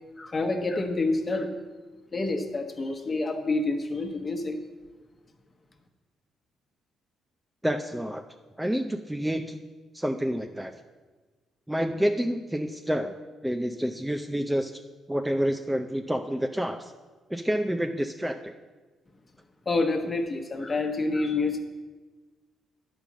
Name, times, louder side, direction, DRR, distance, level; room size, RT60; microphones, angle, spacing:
voice 1, 0.2-1.5 2.1-4.6 19.6-21.6, left 3 dB, 30° left, 5 dB, 1.2 m, -28 dB
voice 2, 7.6-8.2 8.6-9.6 9.9-10.7 11.7-13.2 13.4-14.8 15.1-16.9 17.3-18.5, equal, 5° right, 6 dB, 0.5 m, -28 dB
10.0 x 5.3 x 7.3 m, 1.3 s
cardioid pair, 90°, 0 cm